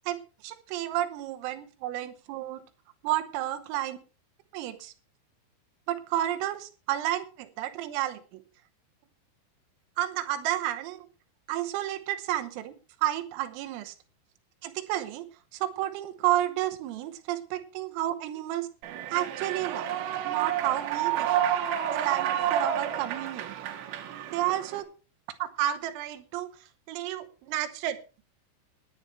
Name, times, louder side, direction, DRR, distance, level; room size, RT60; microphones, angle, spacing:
voice 1, 0.4-2.6 3.0-4.0 4.5-4.9 5.9-8.4 10.0-11.1 11.5-12.7 13.0-14.0 14.6-15.3 15.5-18.7 19.1-19.9 20.3-21.4 21.9-23.6 24.3-24.9 25.4-26.5 26.9-28.0, right 13 dB, 85° right, 9 dB, 3.7 m, -31 dB
Human voice / Clapping / Cheering, 18.8-24.8, right 10 dB, 70° right, 3.1 m, -30 dB
20.0 x 9.7 x 3.3 m, 0.34 s
omnidirectional pair, 5.9 m